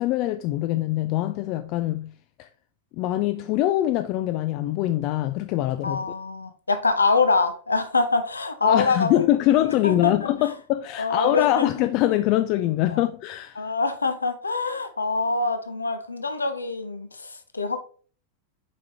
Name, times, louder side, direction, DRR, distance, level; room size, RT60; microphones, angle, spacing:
voice 1, 0.0-2.1 2.4-2.5 3.0-6.0 8.6-13.7, left 14 dB, 40° left, 0.3 m, -23 dB
voice 2, 5.8-9.2 9.6-10.1 11.0-11.9 12.9-13.0 13.6-17.8, left 3 dB, 80° left, 0.7 m, -25 dB
6.9 x 4.9 x 2.9 m
figure-of-eight pair, 90°, 0 cm